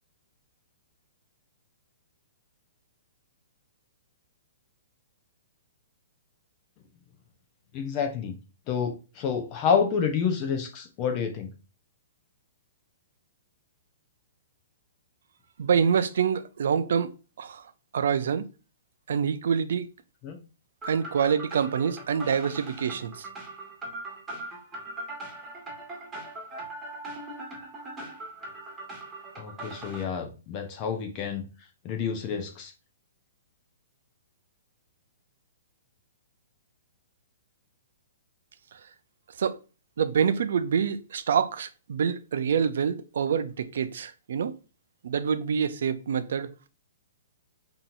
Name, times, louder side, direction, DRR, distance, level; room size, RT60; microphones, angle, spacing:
voice 1, 7.7-8.4 8.7-11.5 20.2-20.4 29.4-31.4 31.8-32.7, left 6 dB, 30° left, 0.7 m, -28 dB
voice 2, 15.6-17.1 17.4-17.6 17.9-18.4 19.1-19.9 20.9-23.3 39.4-39.6 40.0-44.5 45.0-46.7, right 7 dB, 70° right, 0.5 m, -26 dB
sound 1, 20.8-30.0, right 2 dB, 10° right, 1.5 m, -40 dB
5.5 x 2.9 x 2.6 m
hypercardioid pair, 160°, 0 cm